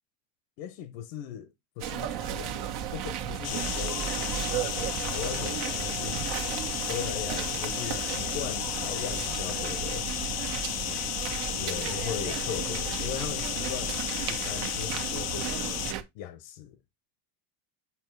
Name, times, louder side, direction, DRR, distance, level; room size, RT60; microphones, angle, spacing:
voice 1, 0.6-6.3 6.9-10.1 11.6-14.0 14.3-15.8 16.1-16.8, left 10 dB, 80° left, 0.9 m, -39 dB
sound 1, 1.8-16.0, right 9 dB, 55° right, 1.3 m, -34 dB
sound 2, 3.4-15.9, left 12 dB, 35° left, 0.5 m, -33 dB
7.1 x 2.9 x 5.9 m
cardioid pair, 140°, 47 cm